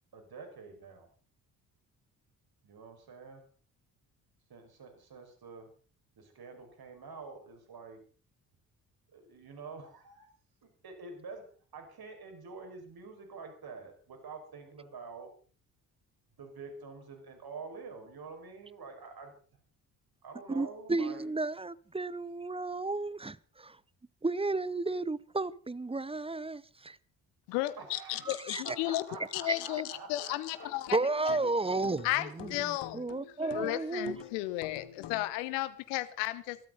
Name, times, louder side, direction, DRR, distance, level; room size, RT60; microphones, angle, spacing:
voice 1, 0.1-1.1 2.6-3.4 4.5-5.7 6.2-8.0 9.1-10.3 10.6-15.3 16.4-19.3 20.2-21.2 27.8-28.4 28.6-30.7 32.4-32.5, right 4 dB, 50° right, 5.9 m, -47 dB
voice 2, 20.5-23.8 24.2-26.6 28.4-28.6 29.5-29.6 30.9-34.1, right 3 dB, 10° right, 0.8 m, -33 dB
voice 3, 27.5-29.0 29.3-31.0 31.3-31.4 32.0-33.0 33.5-36.6, left 17 dB, 80° left, 1.0 m, -34 dB
sound 1, 28.6-35.3, left 10 dB, 60° left, 1.8 m, -49 dB
21.5 x 13.5 x 4.1 m
hypercardioid pair, 50°, 47 cm